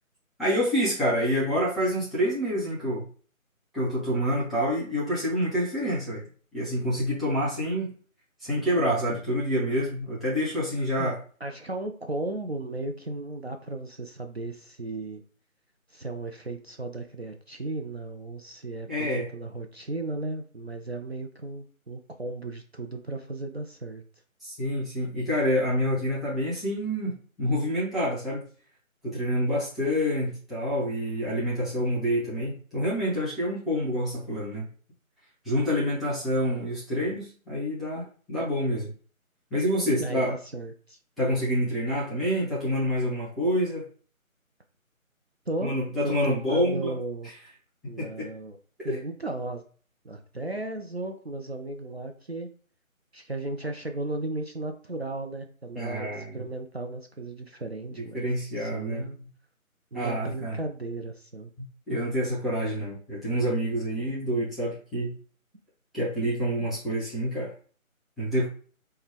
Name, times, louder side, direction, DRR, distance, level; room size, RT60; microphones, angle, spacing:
voice 1, 0.4-3.1 3.7-6.2 6.5-7.9 8.4-11.2 18.9-19.3 24.4-28.4 29.0-34.7 35.4-38.9 39.5-40.3 41.2-43.8 45.6-47.0 47.8-48.3 48.8-49.0 55.8-56.4 58.1-59.0 59.9-60.6 61.6-65.2 65.9-67.5 68.2-68.5, equal, ahead, -9 dB, 0.6 m, -27 dB
voice 2, 11.0-15.2 15.9-24.0 40.0-41.0 45.5-45.7 46.0-47.3 47.8-48.6 48.8-49.6 50.0-52.5 53.1-58.3 58.6-59.2 59.9-61.5, right 2 dB, 50° right, 4 dB, 0.5 m, -35 dB
4.4 x 2.1 x 3.6 m, 0.42 s
figure-of-eight pair, 160°, 42 cm